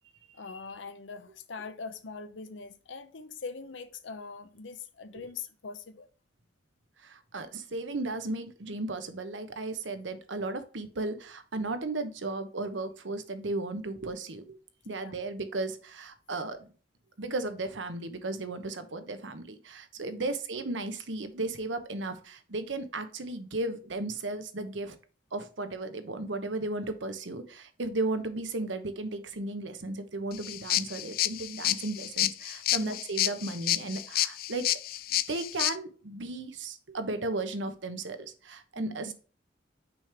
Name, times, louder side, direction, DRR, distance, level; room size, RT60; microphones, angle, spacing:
voice 1, 0.3-6.1 14.8-15.1 20.1-20.3 32.7-33.0 38.8-39.0, left 4 dB, 80° left, 0.8 m, -42 dB
voice 2, 7.0-14.6 14.9-16.7 17.2-25.0 25.3-34.8 35.3-39.1, right 2 dB, 75° right, 1.0 m, -35 dB
sound 1, 30.3-35.7, left 14 dB, 50° left, 0.3 m, -29 dB
6.0 x 5.1 x 3.4 m
head